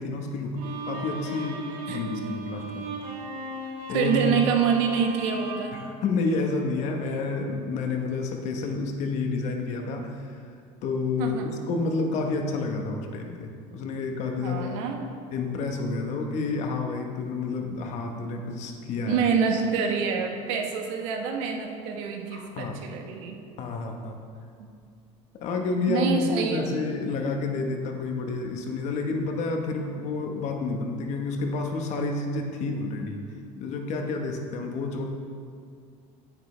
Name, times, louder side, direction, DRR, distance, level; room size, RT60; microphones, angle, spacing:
voice 1, 0.0-2.8 3.9-4.3 5.7-10.4 10.8-14.8 15.3-19.2 22.3-22.7 23.6-24.2 25.4-33.2 33.6-35.1, left 3 dB, 50° left, 3 dB, 1.1 m, -29 dB
Bowed string instrument, 0.6-6.8, right 2 dB, 65° right, 1.4 m, -37 dB
voice 2, 3.9-5.8 11.2-11.5 14.4-15.1 19.1-23.4 25.9-26.6, right 6 dB, 90° right, 3 dB, 1.2 m, -26 dB
9.6 x 9.4 x 3.3 m, 2.3 s
cardioid pair, 155°, 15 cm